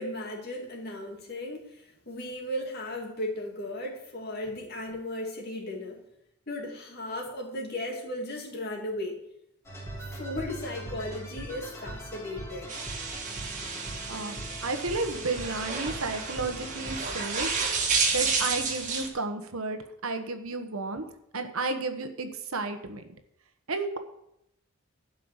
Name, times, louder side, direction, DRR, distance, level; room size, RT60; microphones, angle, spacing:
voice 1, 0.0-6.0 6.5-9.2 10.1-12.8, left 1 dB, 45° left, 1 dB, 2.3 m, -36 dB
sound 1, 9.6-17.6, right 1 dB, 15° left, 3.0 m, -41 dB
sound 2, 12.7-19.1, right 4 dB, 35° right, 1.8 m, -31 dB
voice 2, 14.1-17.5 18.1-21.0 21.3-23.0 23.7-24.0, right 3 dB, 75° right, 7 dB, 1.2 m, -32 dB
12.0 x 5.6 x 8.1 m, 0.79 s
head